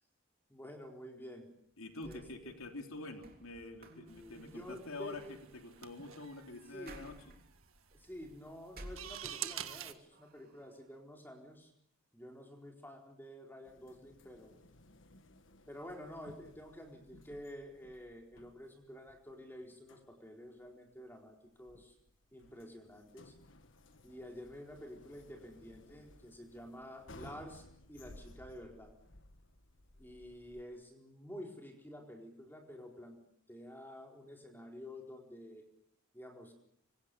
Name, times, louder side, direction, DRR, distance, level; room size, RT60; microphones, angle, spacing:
voice 1, 0.5-1.5 2.0-2.5 3.8-5.4 6.7-7.1 7.9-11.7 12.1-14.6 15.7-21.9 22.3-23.3 24.0-28.9 30.0-33.2 33.5-35.6 36.1-36.5, left 1 dB, 10° left, 2 dB, 4.3 m, -50 dB
sound 1, 1.7-9.7 10.1-10.9, right 1 dB, 45° right, 3.4 m, -57 dB
voice 2, 1.8-5.2 5.5-7.4, left 2 dB, 85° left, 4 dB, 3.5 m, -46 dB
sound 2, 4.1-9.9, right 10 dB, 85° right, 1.7 m, -47 dB
sound 3, 13.6-30.6, left 2 dB, 60° left, 1.5 m, -59 dB
26.0 x 25.0 x 6.9 m, 0.68 s
head